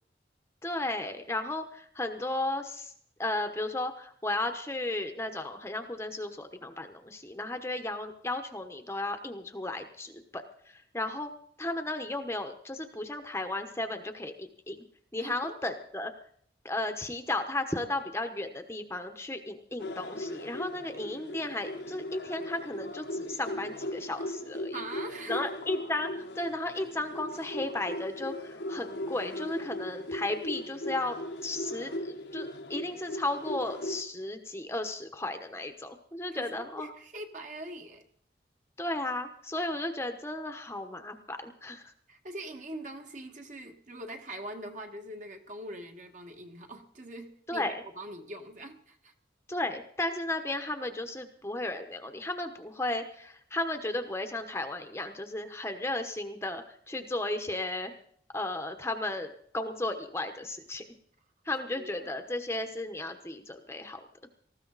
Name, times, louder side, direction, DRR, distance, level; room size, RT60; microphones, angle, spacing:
voice 1, 0.6-2.9 3.2-11.3 11.6-14.8 15.1-16.1 16.6-24.8 25.3-31.2 31.4-36.9 38.8-41.9 47.5-47.8 49.5-57.9 58.3-60.8 61.4-64.0, left 2 dB, 15° left, 7 dB, 1.1 m, -34 dB
voice 2, 15.2-15.7 24.7-25.5 36.3-38.0 42.1-49.1 61.7-62.2, right 1 dB, 40° right, 4 dB, 1.8 m, -43 dB
sound 1, 19.8-34.0, left 1 dB, 70° left, 1.2 m, -38 dB
19.0 x 15.0 x 4.1 m, 0.63 s
head